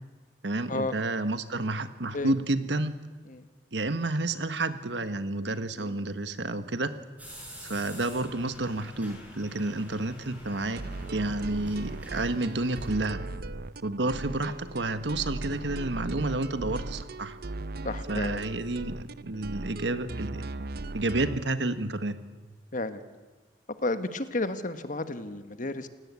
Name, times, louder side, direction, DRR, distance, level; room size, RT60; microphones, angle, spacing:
voice 1, 0.4-2.9 3.7-6.9 7.6-10.8 11.1-13.2 13.8-17.4 18.1-20.4 20.9-22.2, right 2 dB, 85° right, 10 dB, 1.5 m, -30 dB
sound 1, 7.2-12.9, equal, 10° right, 7.7 m, -46 dB
sound 2, 10.8-21.4, right 2 dB, 60° right, 0.7 m, -38 dB
voice 2, 16.3-16.7 17.8-18.4 20.6-20.7 22.7-23.0 23.8-25.9, left 2 dB, 50° left, 10 dB, 1.4 m, -33 dB
28.5 x 17.5 x 8.4 m, 1.4 s
head